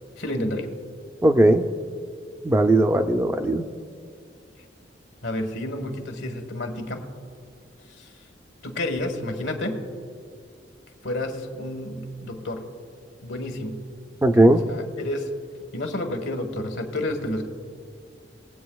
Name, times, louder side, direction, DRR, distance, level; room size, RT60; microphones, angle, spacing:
voice 1, 0.2-0.7 5.2-7.0 8.0-8.1 8.6-9.8 11.0-12.7 13.2-13.8 14.4-15.3 15.7-17.5, left 1 dB, 85° left, 4 dB, 1.3 m, -30 dB
voice 2, 1.2-1.6 2.4-3.6 14.2-14.6, right 1 dB, 15° right, 7 dB, 0.4 m, -18 dB
21.0 x 8.2 x 2.3 m, 2.2 s
head